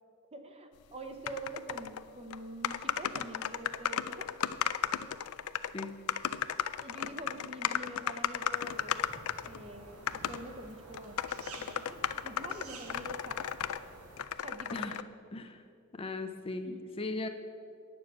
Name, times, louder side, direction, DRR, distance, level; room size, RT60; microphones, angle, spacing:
voice 1, 0.3-4.4 6.8-11.2 11.6-13.5 14.4-15.0 16.6-16.8, right 1 dB, 25° right, 6 dB, 0.8 m, -46 dB
sound 1, 1.3-2.0 2.3-2.4 2.6-9.6 10.1-10.4 10.9-13.8 14.2-15.0, left 9 dB, 80° left, 0.4 m, -34 dB
voice 2, 5.7-6.1 14.7-15.0 15.3-15.6 15.9-17.3, left 2 dB, 25° left, 6 dB, 0.5 m, -38 dB
sound 2, 8.5-14.2, right 3 dB, 80° right, 1.3 m, -51 dB
9.6 x 6.9 x 7.8 m, 2.3 s
head